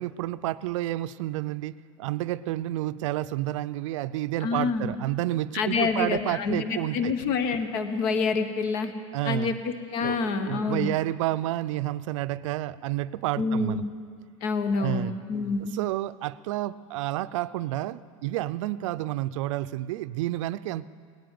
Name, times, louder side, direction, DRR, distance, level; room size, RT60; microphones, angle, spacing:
voice 1, 0.0-1.7 2.0-7.1 9.1-9.6 10.0-13.8 14.8-15.1 15.7-20.9, right 15 dB, 70° right, 16 dB, 0.5 m, -30 dB
voice 2, 4.4-4.9 5.5-8.9 9.2-10.9 13.4-13.9 14.4-15.8, left 4 dB, 55° left, 9 dB, 1.3 m, -27 dB
18.5 x 10.5 x 7.6 m, 2.2 s
supercardioid pair, 125°, 17 cm